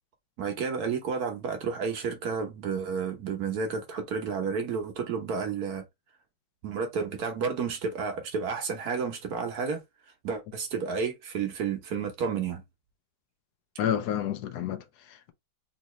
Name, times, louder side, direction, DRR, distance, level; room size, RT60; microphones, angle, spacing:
voice 1, 0.4-5.8 6.6-9.8 10.2-12.6, right 5 dB, 60° right, 1.2 m, -31 dB
voice 2, 13.8-15.3, left 10 dB, 70° left, 0.9 m, -30 dB
3.9 x 2.7 x 3.0 m
omnidirectional pair, 2.1 m